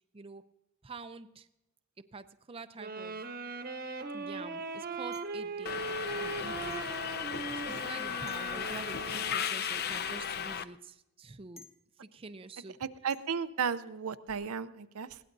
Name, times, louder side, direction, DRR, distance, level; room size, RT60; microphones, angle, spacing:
voice 1, 0.8-1.5 2.1-3.2 4.1-5.9 6.2-6.8 7.5-11.7 12.0-12.8, right 3 dB, 25° right, 10 dB, 0.5 m, -47 dB
sound 1, 2.8-9.8, right 3 dB, 45° right, 1.0 m, -39 dB
sound 2, 5.1-5.5 6.7-6.9 8.3-8.5 9.9-10.2 11.6-11.8 13.1-13.3, left 3 dB, 30° left, 1.2 m, -56 dB
Subway metro underground, 5.6-10.6, left 8 dB, 45° left, 0.5 m, -35 dB
voice 2, 12.8-15.2, right 6 dB, 85° right, 12 dB, 0.6 m, -34 dB
21.0 x 16.5 x 2.6 m, 0.89 s
head